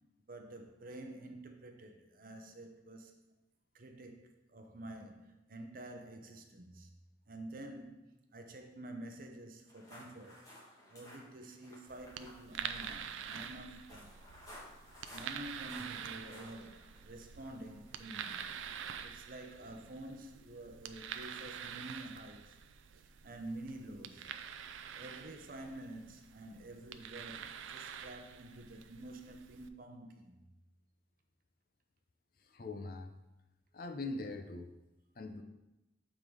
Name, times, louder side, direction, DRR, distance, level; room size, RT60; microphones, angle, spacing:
voice 1, 0.3-3.2 3.7-6.9 7.3-10.5 10.9-14.2 15.1-18.5 19.0-22.6 22.9-30.4, right 1 dB, 45° right, 0.6 m, -49 dB
sound 1, 9.7-18.6, left 1 dB, 20° left, 1.3 m, -56 dB
sound 2, 11.9-29.7, right 8 dB, 85° right, 0.4 m, -47 dB
voice 2, 32.5-33.2 33.7-34.7 35.2-35.4, left 2 dB, 50° left, 0.5 m, -42 dB
6.8 x 3.8 x 4.6 m
head